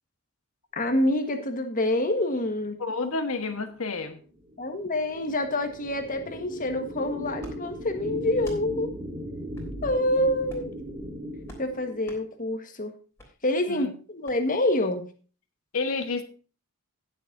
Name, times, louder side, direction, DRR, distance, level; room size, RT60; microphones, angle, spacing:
voice 1, 0.7-2.8 4.6-8.9 9.8-10.6 11.6-12.9 13.4-15.0, left 1 dB, 35° left, 1.5 m, -27 dB
voice 2, 2.8-4.2 13.7-13.9 15.7-16.2, left 3 dB, 70° left, 1.4 m, -30 dB
sound 1, 3.6-12.3, right 1 dB, 25° right, 2.1 m, -38 dB
sound 2, 7.4-7.6 8.4-8.6 9.5-9.7 10.4-10.8 11.5-11.7 12.0-12.2 13.2-13.3 14.2-14.4, equal, 10° left, 3.4 m, -46 dB
18.0 x 7.3 x 2.7 m
head